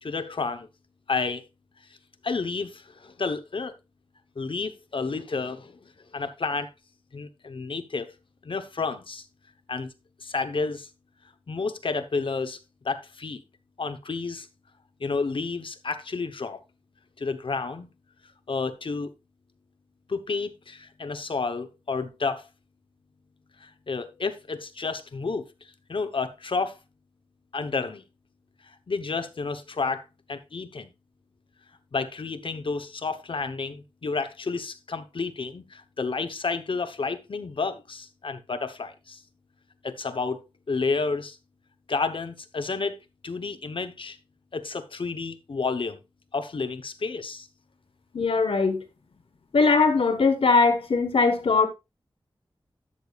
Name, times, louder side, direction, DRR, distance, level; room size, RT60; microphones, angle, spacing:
voice 1, 0.0-0.7 1.1-1.5 2.2-3.7 4.4-5.8 6.1-6.7 7.1-8.1 8.4-9.2 9.7-9.9 10.2-10.9 11.5-12.6 12.8-13.4 13.8-14.5 15.0-16.6 17.2-17.9 18.5-19.1 20.1-22.4 23.6-25.4 25.9-26.8 27.5-28.0 28.9-30.0 30.3-30.9 31.9-39.2 39.8-40.4 40.7-41.4 41.9-43.0 43.2-44.2 44.5-46.0 46.3-47.5, left 4 dB, 70° left, 1.0 m, -30 dB
voice 2, 48.1-48.8 49.5-51.7, left 4 dB, 90° left, 1.4 m, -20 dB
12.5 x 6.8 x 2.4 m
wide cardioid pair, 75°, 9 cm